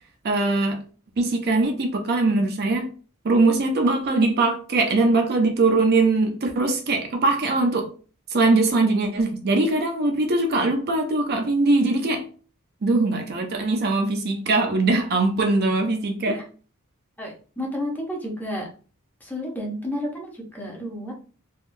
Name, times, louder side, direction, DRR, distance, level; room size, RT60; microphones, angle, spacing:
voice 1, 0.2-0.8 1.2-2.9 3.2-7.9 8.3-12.2 12.8-16.4, right 2 dB, 50° right, 0.5 m, -21 dB
voice 2, 17.2-18.7 19.2-21.1, left 1 dB, 10° left, 0.7 m, -31 dB
3.5 x 2.3 x 2.6 m
head